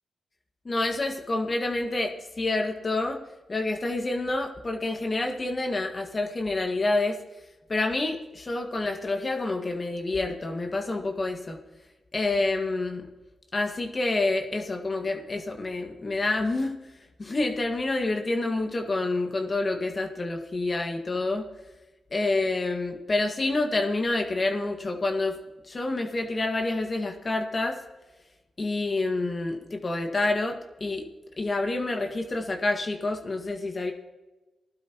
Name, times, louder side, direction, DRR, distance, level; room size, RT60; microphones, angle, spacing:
voice 1, 0.7-3.2 3.5-7.2 7.7-11.6 12.1-13.1 13.5-16.8 17.2-21.5 22.1-25.4 25.6-27.8 28.6-31.0 31.4-33.9, left 2 dB, 40° left, 4 dB, 1.9 m, -28 dB
19.0 x 12.0 x 3.0 m, 1.1 s
supercardioid pair, 50°, 0 cm